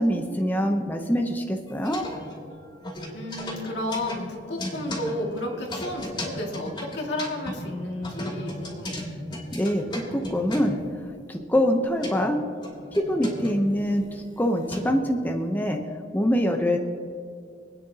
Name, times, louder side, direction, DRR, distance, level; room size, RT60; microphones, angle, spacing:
voice 1, 0.0-2.1 9.5-10.8 11.3-12.4 12.9-15.8 16.1-16.8, equal, 10° left, 3 dB, 0.7 m, -24 dB
sound 1, 1.7-2.5 2.8-7.6 8.0-10.8 11.7-12.1 12.6-15.0, left 1 dB, 25° left, 2.7 m, -35 dB
voice 2, 3.1-9.0, left 1 dB, 70° left, 0 dB, 2.1 m, -32 dB
26.0 x 9.5 x 2.8 m, 2.4 s
head